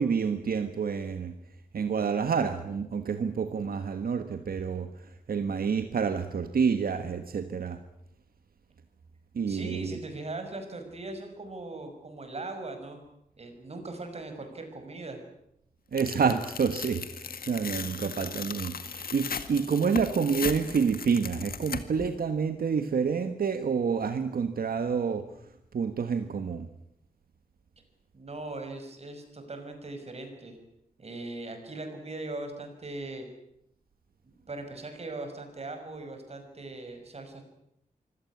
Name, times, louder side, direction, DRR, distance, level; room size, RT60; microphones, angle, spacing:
voice 1, 0.0-1.3 1.7-4.9 5.3-7.8 9.3-9.9 15.9-25.3 25.7-26.7, right 6 dB, 80° right, 8 dB, 1.5 m, -28 dB
voice 2, 9.5-13.0 13.4-15.2 28.1-30.6 31.0-33.3 34.2-37.4, right 2 dB, 45° right, 6 dB, 5.8 m, -39 dB
Tearing, 16.0-22.1, left 6 dB, 80° left, 2.0 m, -37 dB
25.5 x 17.0 x 9.8 m, 0.78 s
wide cardioid pair, 130°, 15 cm